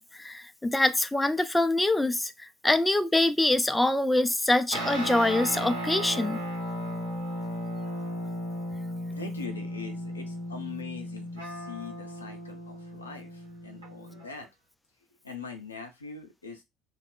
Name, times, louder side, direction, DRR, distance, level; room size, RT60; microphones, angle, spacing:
voice 1, 0.0-6.4, left 2 dB, 10° left, 0.3 m, -25 dB
sound 1, 4.7-14.4, equal, 80° right, 0.9 m, -35 dB
voice 2, 9.1-14.5 15.2-16.6, left 5 dB, 85° left, 0.5 m, -42 dB
2.7 x 2.0 x 2.4 m
figure-of-eight pair, 55°, 0 cm